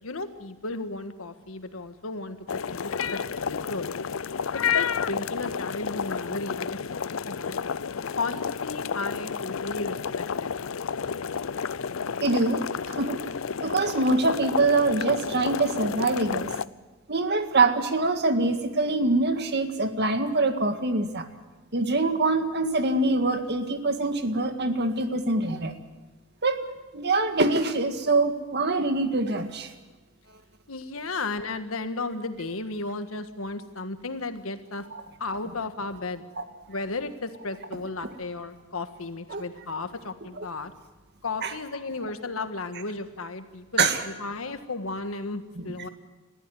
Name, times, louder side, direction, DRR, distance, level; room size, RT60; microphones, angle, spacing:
voice 1, 0.0-3.9 4.5-7.8 8.2-10.5 30.7-34.8 35.2-36.2 36.7-40.7 41.2-45.9, left 3 dB, 90° left, 9 dB, 1.6 m, -34 dB
sound 1, 2.5-16.7, left 6 dB, 75° left, 0.6 m, -31 dB
voice 2, 12.2-13.2 13.6-16.5 17.1-21.3 21.7-25.8 26.4-26.6 26.9-29.7 34.9-35.0 36.4-36.5 39.3-39.4 41.4-41.5 43.8-44.0 45.6-45.7, right 2 dB, 55° right, 7 dB, 1.9 m, -24 dB
20.5 x 14.5 x 9.4 m, 1.3 s
head